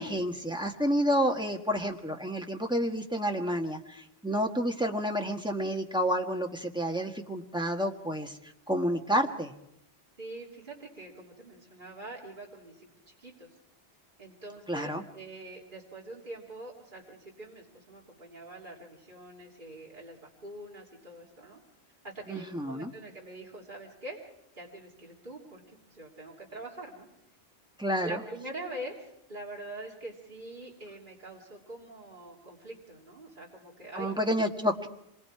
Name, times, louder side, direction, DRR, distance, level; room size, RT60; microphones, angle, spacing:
voice 1, 0.0-8.4 8.7-9.5 14.7-15.0 22.3-22.9 27.8-28.2 34.0-34.9, equal, 5° right, 2 dB, 1.4 m, -29 dB
voice 2, 10.2-13.5 14.2-21.6 22.0-24.2 24.5-27.1 28.0-34.1, right 2 dB, 50° right, -3 dB, 3.4 m, -44 dB
26.5 x 21.5 x 4.8 m, 0.79 s
omnidirectional pair, 1.1 m